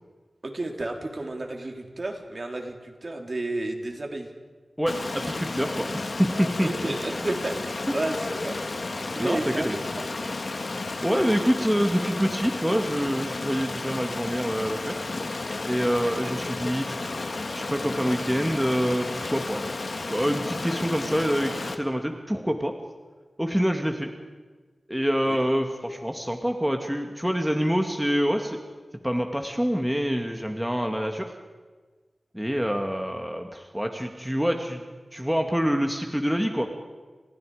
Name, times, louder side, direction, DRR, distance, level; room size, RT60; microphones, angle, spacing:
voice 1, 0.4-4.3 6.6-9.7 16.0-16.4 25.2-25.4, right 2 dB, 45° right, 2 dB, 3.6 m, -32 dB
voice 2, 4.8-6.7 9.2-9.8 11.0-15.1 15.6-17.1 17.5-19.6 20.1-22.7 23.4-24.1 24.9-28.6 29.0-31.3 32.3-34.8 35.1-36.7, equal, 5° right, 3 dB, 2.1 m, -26 dB
Stream, 4.9-21.7, left 3 dB, 60° left, 2.1 m, -32 dB
30.0 x 28.0 x 5.1 m, 1.4 s
wide cardioid pair, 90°, 0 cm